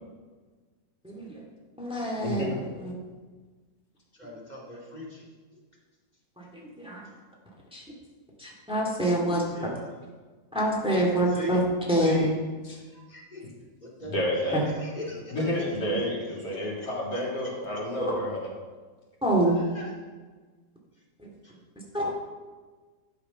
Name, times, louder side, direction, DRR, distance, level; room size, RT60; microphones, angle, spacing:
voice 1, 1.0-1.4 1.8-2.9 6.4-7.0 7.7-7.8 8.4-9.4 10.5-11.6 11.9-12.3 14.5-14.7 18.0-18.1 19.2-19.6 21.2-21.3 21.9-22.1, right 1 dB, 5° right, -3 dB, 2.2 m, -26 dB
voice 2, 2.2-2.5 14.0-14.6 15.3-18.5, left 1 dB, 75° left, -4 dB, 3.2 m, -30 dB
voice 3, 4.1-5.3 9.2-9.9 10.8-11.6 12.0-12.3 12.7-13.4 13.8-15.5 16.6-16.7 17.1-17.2 19.4-19.9 21.4-21.5 21.9-22.0, left 1 dB, 25° left, -4 dB, 2.6 m, -40 dB
11.5 x 6.8 x 5.7 m, 1.4 s
omnidirectional pair, 1.7 m